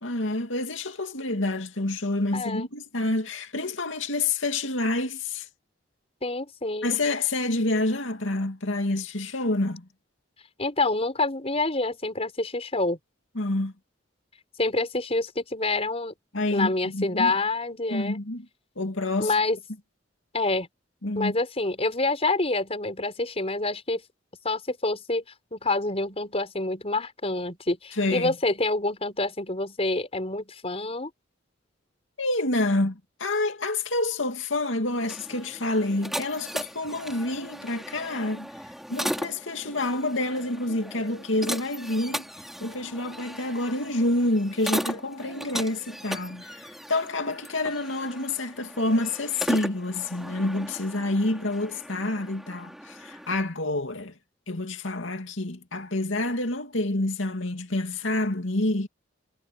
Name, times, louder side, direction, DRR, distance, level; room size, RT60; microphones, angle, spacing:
voice 1, 0.0-5.5 6.8-9.9 13.3-13.7 16.3-17.3 17.9-18.5 18.8-19.3 21.0-21.3 28.0-28.3 32.2-38.5 38.9-42.3 42.6-54.1 54.5-58.9, left 2 dB, 85° left, 2.5 m, -28 dB
voice 2, 2.3-2.7 6.2-7.0 10.6-13.0 14.6-16.1 16.5-18.2 19.2-19.6 20.3-20.7 21.2-24.0 24.4-25.2 25.5-31.1, left 2 dB, 35° left, 5.3 m, -27 dB
sound 1, 34.9-53.4, equal, ahead, 3.9 m, -37 dB
head